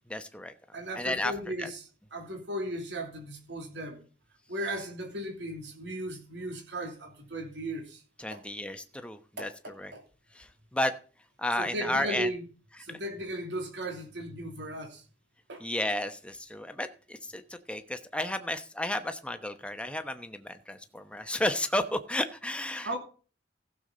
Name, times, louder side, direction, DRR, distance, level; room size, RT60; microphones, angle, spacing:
voice 1, 0.1-0.5 0.9-1.3 1.6-1.7 8.2-9.9 10.3-10.9 11.4-12.3 12.9-13.0 15.6-23.0, left 1 dB, 5° left, 1.0 m, -32 dB
voice 2, 0.7-1.8 2.1-4.0 4.5-8.0 8.3-8.4 9.4-10.0 11.6-12.4 12.8-15.0 15.5-15.6 22.8-23.0, right 1 dB, 70° right, 2.9 m, -36 dB
15.5 x 7.1 x 3.9 m
head